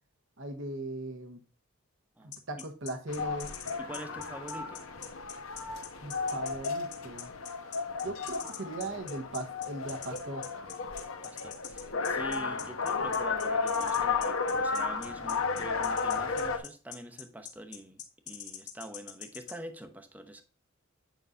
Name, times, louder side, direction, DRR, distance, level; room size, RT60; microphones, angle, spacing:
voice 1, 0.4-1.4 2.2-3.5 6.0-7.3 8.0-10.5, right 2 dB, 60° right, 1.0 m, -39 dB
sound 1, 2.3-19.6, left 9 dB, 55° left, 2.1 m, -44 dB
sound 2, 3.1-16.6, left 4 dB, 80° left, 1.0 m, -33 dB
voice 2, 3.8-4.8 11.2-18.0 18.3-20.4, right 1 dB, 10° right, 0.8 m, -45 dB
9.2 x 5.4 x 2.4 m
head